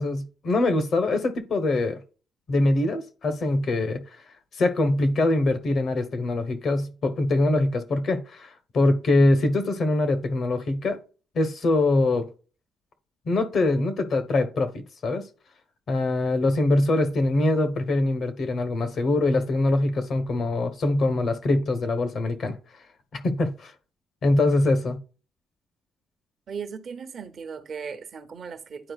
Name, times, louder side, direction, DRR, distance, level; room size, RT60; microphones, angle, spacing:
voice 1, 0.0-2.0 2.5-4.0 4.6-11.0 11.3-12.3 13.2-15.3 15.9-22.6 23.1-23.7 24.2-25.0, left 2 dB, 55° left, 1.0 m, -23 dB
voice 2, 26.5-28.9, right 6 dB, 55° right, 0.9 m, -37 dB
9.9 x 4.4 x 2.4 m
cardioid pair, 90°, 0 cm